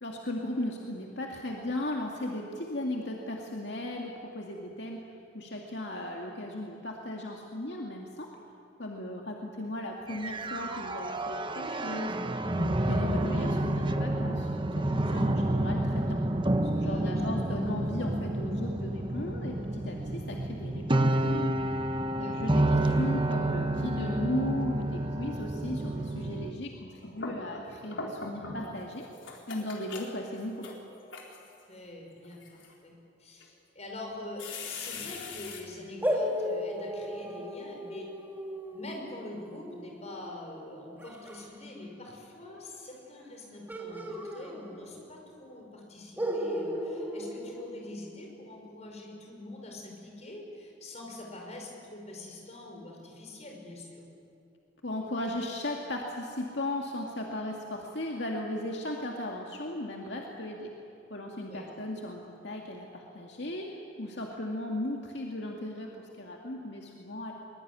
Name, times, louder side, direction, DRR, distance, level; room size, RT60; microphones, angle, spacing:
voice 1, 0.0-5.0 5.3-8.3 8.8-12.1 12.5-14.5 14.8-16.2 16.6-21.6 22.2-29.1 29.5-30.7 54.8-60.7 61.1-67.3, left 1 dB, 65° left, 0 dB, 2.2 m, -36 dB
sound 1, 10.1-26.5, right 1 dB, 25° right, 1.1 m, -29 dB
voice 2, 16.8-17.6 22.2-22.6 31.7-32.9 33.2-38.1 38.7-54.0 61.4-61.7, left 2 dB, 35° left, 1 dB, 5.7 m, -44 dB
sound 2, 26.8-28.7 29.0-31.6 32.2-32.7 33.4-33.5 34.4-35.6, left 3 dB, 90° left, 4.0 m, -41 dB
sound 3, 36.0-41.4 43.7-45.1 45.4-45.5 46.2-48.3, equal, 10° right, 2.6 m, -36 dB
23.0 x 22.5 x 9.7 m, 2.7 s
head